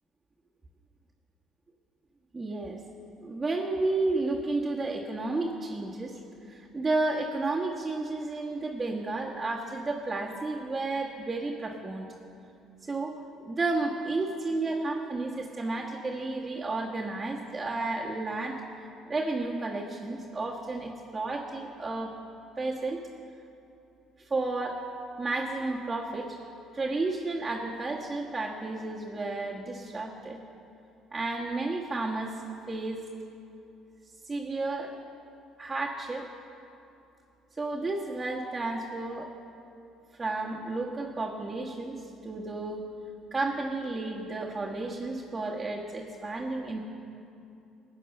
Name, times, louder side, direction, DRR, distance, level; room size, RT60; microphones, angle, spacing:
voice 1, 2.3-2.8 3.2-6.2 6.5-12.1 12.8-22.1 22.6-23.0 24.2-24.8 25.2-26.4 26.7-30.4 31.1-32.3 32.7-33.0 34.3-35.0 35.6-36.3 37.6-39.3 40.2-42.9 43.3-46.8, right 2 dB, 25° right, -4 dB, 1.6 m, -32 dB
14.5 x 9.2 x 6.8 m, 2.7 s
supercardioid pair, 70°, 0 cm